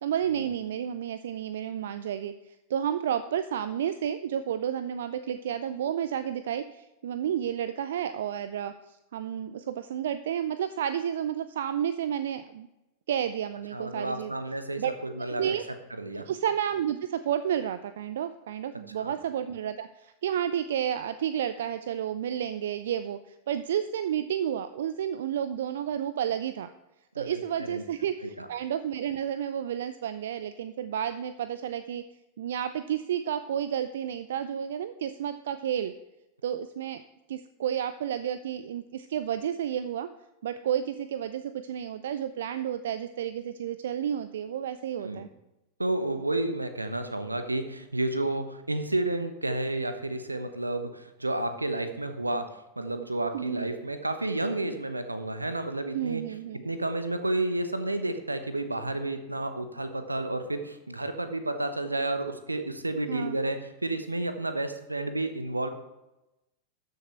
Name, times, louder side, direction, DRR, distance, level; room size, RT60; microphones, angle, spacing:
voice 1, 0.0-12.7 13.1-14.3 14.8-14.9 15.3-15.6 16.1-26.7 27.2-32.0 32.4-35.9 36.4-37.0 37.3-40.1 40.4-45.3 53.3-53.7 55.9-56.6 63.1-63.4, right 9 dB, 60° right, 12 dB, 0.4 m, -31 dB
voice 2, 13.7-15.5 16.0-16.3 19.0-19.1 27.1-27.8 28.2-28.5 45.0-45.2 45.8-56.2 56.6-65.7, right 2 dB, 85° right, 8 dB, 1.0 m, -31 dB
13.0 x 6.9 x 4.4 m, 0.96 s
figure-of-eight pair, 90°, 0 cm